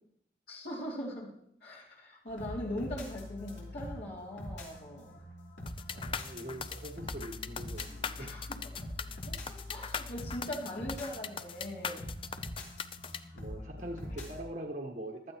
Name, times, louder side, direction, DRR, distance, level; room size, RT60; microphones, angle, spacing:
voice 1, 0.5-1.3 1.6-5.2 8.2-8.7 9.2-12.1, left 1 dB, 60° left, -6 dB, 2.7 m, -41 dB
sound 1, 2.3-14.4, left 1 dB, 80° left, 3.6 m, -44 dB
sound 2, 5.7-13.2, left 6 dB, 30° left, 0.5 m, -39 dB
voice 2, 5.9-8.3 13.3-15.3, right 1 dB, 50° right, 0 dB, 1.3 m, -43 dB
15.0 x 12.5 x 3.0 m, 0.73 s
head